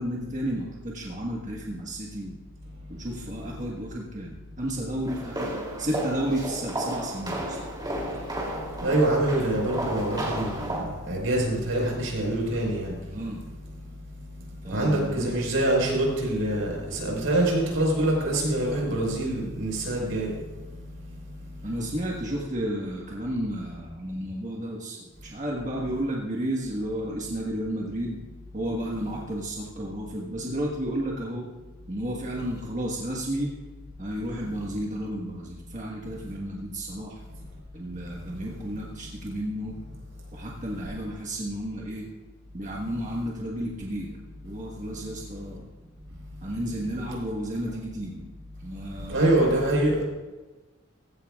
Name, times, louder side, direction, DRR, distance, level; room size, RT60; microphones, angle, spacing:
voice 1, 0.0-2.3 2.9-5.5 5.8-7.6 13.1-13.4 14.6-15.4 21.6-28.2 28.5-31.5 31.9-33.5 34.0-37.2 37.7-40.0 40.3-42.1 42.5-44.2 44.4-45.7 46.1-48.3 48.6-49.4, right 1 dB, 40° right, -3 dB, 1.5 m, -32 dB
sound 1, 5.1-10.8, right 1 dB, 20° right, 3.0 m, -33 dB
voice 2, 8.8-12.9 14.7-20.3 49.1-50.0, right 1 dB, 80° right, -1 dB, 4.9 m, -25 dB
17.0 x 15.5 x 2.4 m, 1.2 s
head